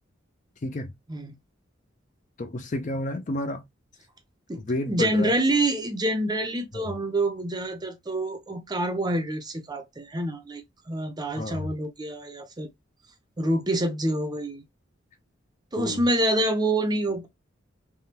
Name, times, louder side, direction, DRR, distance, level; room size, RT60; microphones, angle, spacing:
voice 1, 0.6-0.9 2.4-3.6 4.6-5.3 6.7-6.9 11.4-11.7 15.8-16.0, left 2 dB, 40° left, 0.5 m, -30 dB
voice 2, 4.5-10.6 10.9-12.7 13.4-14.6 15.7-17.3, right 1 dB, 20° right, 0.6 m, -27 dB
3.4 x 2.2 x 2.8 m
head